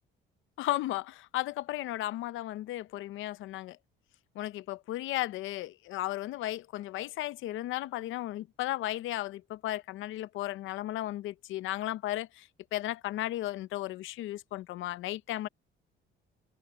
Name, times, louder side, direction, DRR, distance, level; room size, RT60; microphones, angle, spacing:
voice 1, 0.6-3.8 4.3-15.5, left 15 dB, 75° left, 0.7 m, -35 dB
cardioid pair, 130°, 20 cm